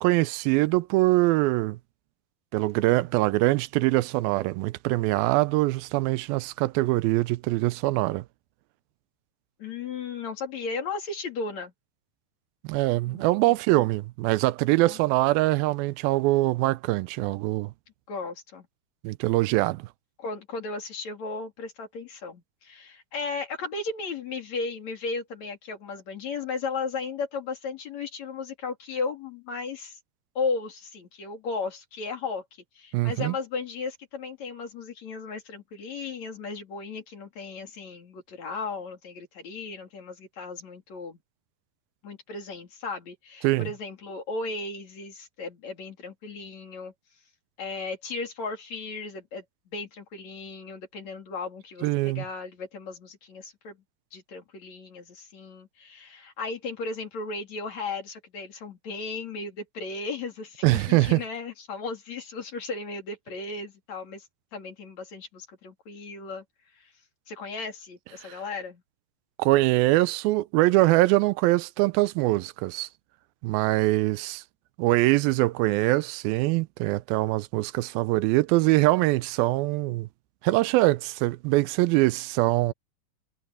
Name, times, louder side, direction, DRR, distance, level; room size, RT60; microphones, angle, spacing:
voice 1, 0.0-1.8 2.5-8.2 12.7-17.7 19.0-19.9 32.9-33.3 43.4-43.7 51.8-52.2 60.6-61.2 68.3-68.4 69.4-72.9 73.4-74.4 74.8-80.1 80.4-82.7, right 19 dB, 85° right, 2.4 m, -23 dB
voice 2, 9.6-11.7 13.1-13.6 14.8-15.0 18.1-18.7 20.2-30.0 30.4-32.4 32.8-41.2 42.0-46.9 47.6-49.4 49.7-53.8 54.1-64.3 64.5-66.4 66.8-66.9 67.3-68.8, left 4 dB, 50° left, 4.1 m, -35 dB
omnidirectional pair, 4.2 m